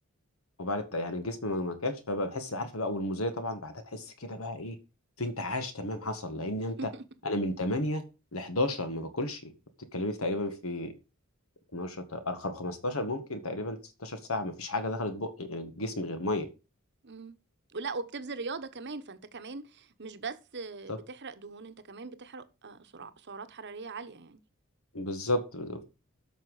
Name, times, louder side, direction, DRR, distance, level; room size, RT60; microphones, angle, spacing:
voice 1, 0.6-4.8 5.2-6.9 7.2-8.0 8.3-9.5 9.9-10.9 11.7-16.5 20.9-21.0 24.9-25.8, left 1 dB, 70° left, 1.9 m, -33 dB
voice 2, 6.6-7.0 17.0-17.4 17.7-24.4, right 4 dB, 55° right, 1.1 m, -40 dB
13.0 x 6.1 x 4.9 m
head